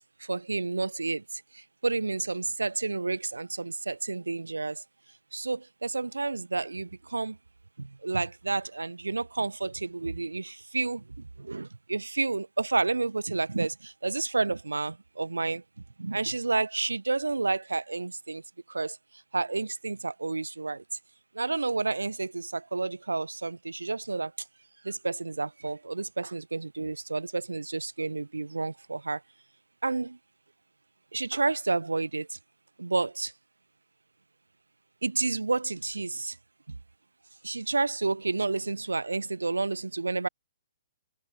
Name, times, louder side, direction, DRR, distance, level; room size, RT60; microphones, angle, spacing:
voice 1, 0.2-4.8 5.3-7.4 7.8-15.6 16.0-18.4 18.7-19.0 19.3-20.8 21.3-24.3 24.8-29.2 29.8-30.2 31.1-32.4 32.8-33.3 35.0-36.4 36.7-36.8 37.4-40.3, right 3 dB, 80° right, 1.9 m, -30 dB
figure-of-eight pair, 125°, 0 cm